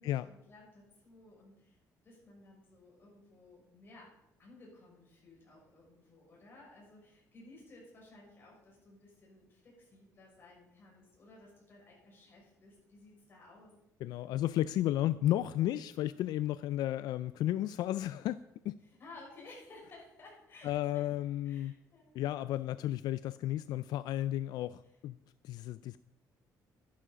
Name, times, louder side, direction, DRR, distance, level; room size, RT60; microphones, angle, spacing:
voice 1, 0.0-1.8 2.0-4.1 4.4-13.7 18.8-22.1, left 2 dB, 30° left, -3 dB, 6.5 m, -56 dB
voice 2, 14.0-18.8 20.6-21.7 22.1-25.2 25.4-26.0, left 13 dB, 80° left, 15 dB, 0.4 m, -33 dB
12.5 x 11.0 x 5.1 m, 0.88 s
cardioid pair, 165°, 7 cm